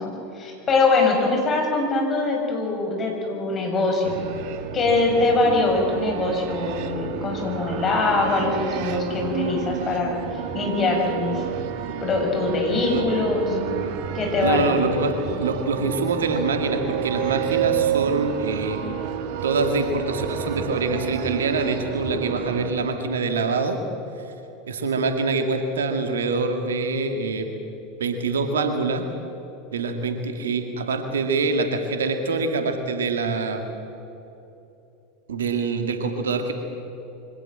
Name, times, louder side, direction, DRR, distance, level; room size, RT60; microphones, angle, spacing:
voice 1, 0.0-4.2 4.7-11.4 12.0-13.6 14.1-14.7, left 3 dB, 30° left, 1 dB, 6.6 m, -23 dB
sound 1, 4.0-22.7, right 9 dB, 55° right, 1.7 m, -30 dB
voice 2, 14.4-18.8 19.4-23.8 24.7-27.5 28.0-29.0 29.7-33.6 35.3-36.5, right 3 dB, 75° right, 6 dB, 2.1 m, -25 dB
24.0 x 18.0 x 7.6 m, 3.0 s
figure-of-eight pair, 80°, 0 cm